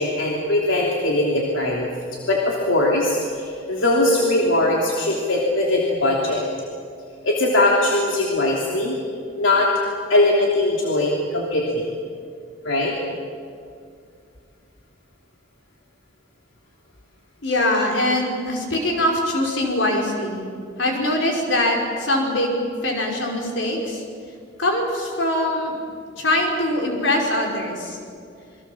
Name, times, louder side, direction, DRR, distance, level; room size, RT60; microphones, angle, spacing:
voice 1, 0.0-6.4 7.2-9.0 9.4-9.7 10.1-11.8 12.6-12.9, left 2 dB, 90° left, -2 dB, 3.2 m, -20 dB
voice 2, 17.4-20.5 20.8-22.5 22.8-24.0 24.6-25.8 26.1-28.0, left 1 dB, 70° left, 0 dB, 5.4 m, -22 dB
28.0 x 23.0 x 7.4 m, 2.3 s
head